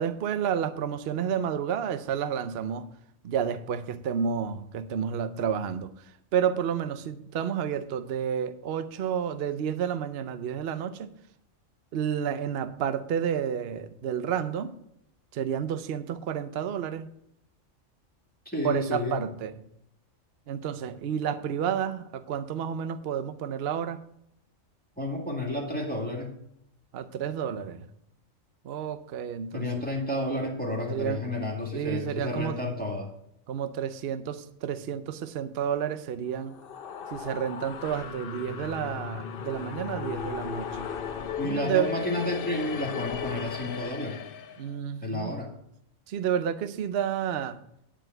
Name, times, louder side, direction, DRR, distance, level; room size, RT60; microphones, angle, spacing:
voice 1, 0.0-2.9 3.2-5.9 6.3-11.1 11.9-14.8 15.3-17.1 18.6-19.6 20.5-24.0 26.9-27.9 28.6-29.8 30.9-31.3 31.7-32.6 33.5-36.6 37.1-40.9 41.4-42.0 44.6-45.3 46.1-47.6, right 8 dB, 55° right, 11 dB, 0.8 m, -30 dB
voice 2, 18.5-19.2 25.0-26.3 29.5-33.1 41.4-44.2 45.0-45.5, left 1 dB, 5° left, -2 dB, 2.0 m, -31 dB
sound 1, 36.3-44.7, left 7 dB, 50° left, 0.8 m, -36 dB
10.0 x 5.1 x 7.6 m, 0.75 s
omnidirectional pair, 1.4 m